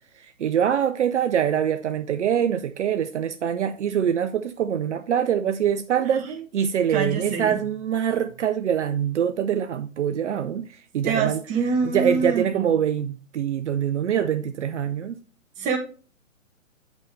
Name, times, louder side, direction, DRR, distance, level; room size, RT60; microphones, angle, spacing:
voice 1, 0.4-10.7 10.9-11.4 11.9-15.2, right 9 dB, 55° right, 0.6 m, -24 dB
voice 2, 6.1-6.4 6.9-7.6 11.0-12.7 15.6-15.8, right 5 dB, 20° right, 1.2 m, -26 dB
8.3 x 5.2 x 3.3 m
hypercardioid pair, 140°, 42 cm